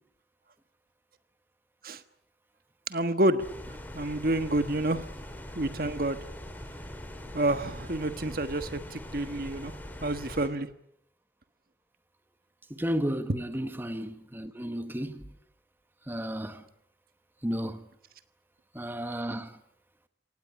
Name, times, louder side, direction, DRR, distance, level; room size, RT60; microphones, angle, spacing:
voice 1, 2.9-3.4 3.9-5.1 5.5-6.3 7.3-9.7 10.0-10.7, right 1 dB, 55° right, 1.4 m, -28 dB
sound 1, 3.4-10.5, equal, 10° left, 3.3 m, -42 dB
voice 2, 12.7-15.2 16.1-16.6 17.4-17.8 18.7-19.5, equal, 10° right, 1.3 m, -33 dB
25.0 x 18.5 x 10.0 m
head